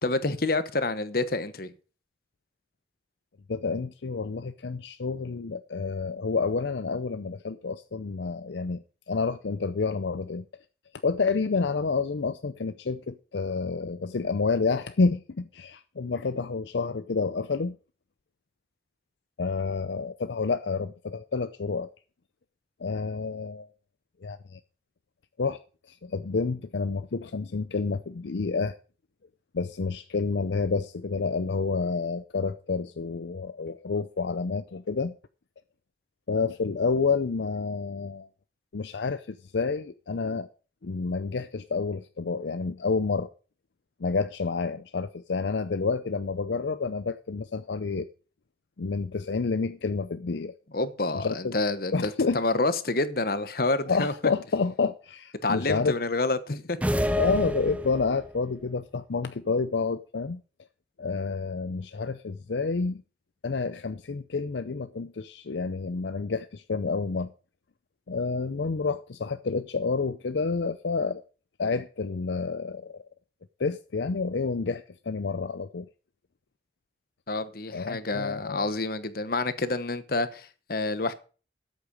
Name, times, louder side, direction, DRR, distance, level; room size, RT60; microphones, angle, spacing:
voice 1, 0.0-1.7 50.7-54.1 55.4-56.9 77.3-81.1, left 2 dB, 55° left, 1.1 m, -28 dB
voice 2, 3.5-10.4 11.0-17.8 19.4-21.9 22.8-23.7 24.2-24.6 25.4-25.6 25.9-28.7 29.5-35.1 36.3-38.3 38.7-40.5 40.8-43.3 44.0-48.1 48.8-50.5 51.1-51.5 51.9-52.4 53.9-55.9 57.1-60.4 61.0-63.0 63.4-67.3 68.1-71.2 71.6-73.0 73.6-75.9 77.7-78.7, left 4 dB, 75° left, 0.6 m, -29 dB
sound 1, 56.8-58.4, equal, 5° right, 0.6 m, -28 dB
13.0 x 8.1 x 5.3 m
head